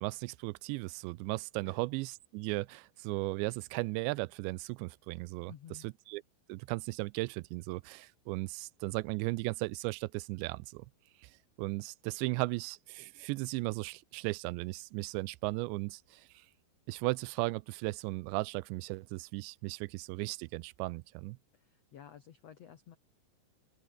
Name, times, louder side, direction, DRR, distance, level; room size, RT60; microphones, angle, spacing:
voice 1, 0.0-5.5 5.8-6.2 6.5-10.9 11.2-11.3 11.6-16.5 16.9-21.4, right 23 dB, 85° right, 2.8 m, -36 dB
voice 2, 5.5-5.9 21.5-23.0, left 9 dB, 75° left, 1.4 m, -53 dB
open air
omnidirectional pair, 5.1 m